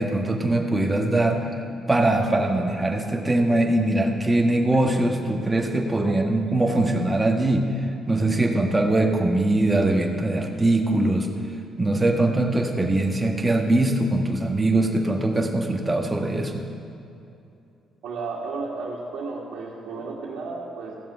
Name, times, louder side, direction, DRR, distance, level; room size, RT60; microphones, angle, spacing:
voice 1, 0.0-1.4 1.9-11.3 11.8-16.6, right 2 dB, 15° right, 1 dB, 1.5 m, -22 dB
voice 2, 18.0-20.9, right 3 dB, 80° right, -6 dB, 1.9 m, -33 dB
15.5 x 7.2 x 5.7 m, 2.7 s
cardioid pair, 90°, 0 cm